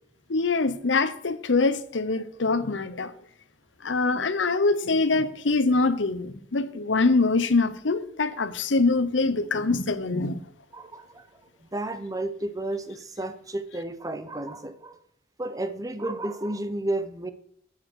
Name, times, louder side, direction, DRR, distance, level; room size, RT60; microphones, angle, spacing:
voice 1, 0.3-3.1 3.8-10.4, left 3 dB, 85° left, 0.9 m, -24 dB
voice 2, 4.1-4.5 10.7-11.2 11.7-15.0 15.4-17.3, right 1 dB, 20° right, 0.8 m, -32 dB
8.6 x 7.5 x 6.3 m
head